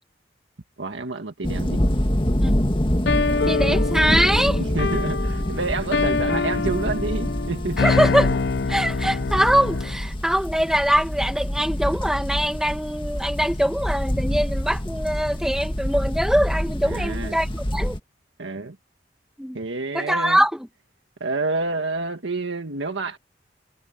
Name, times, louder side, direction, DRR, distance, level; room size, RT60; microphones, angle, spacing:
voice 1, 0.8-1.8 4.6-7.8 16.8-17.4 18.4-18.8 19.5-20.4 21.2-23.2, right 3 dB, 90° right, 1.7 m, -28 dB
sound 1, 1.4-18.0, equal, 25° left, 1.8 m, -26 dB
sound 2, 3.1-10.0, left 4 dB, 65° left, 0.5 m, -25 dB
voice 2, 3.3-4.6 7.8-8.4 8.7-18.0 19.4-19.6 19.9-20.7, equal, 5° right, 1.8 m, -23 dB
head